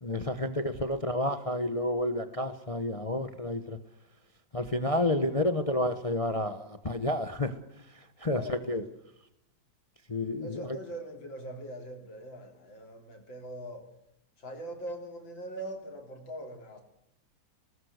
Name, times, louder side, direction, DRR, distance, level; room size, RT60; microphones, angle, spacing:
voice 1, 0.0-3.8 4.5-7.5 8.2-8.8 10.1-10.6, left 1 dB, 25° left, 10 dB, 0.8 m, -30 dB
voice 2, 8.3-8.9 10.4-13.9 14.4-16.8, right 1 dB, 80° left, 4 dB, 4.1 m, -42 dB
20.0 x 19.0 x 8.0 m, 0.80 s
omnidirectional pair, 2.1 m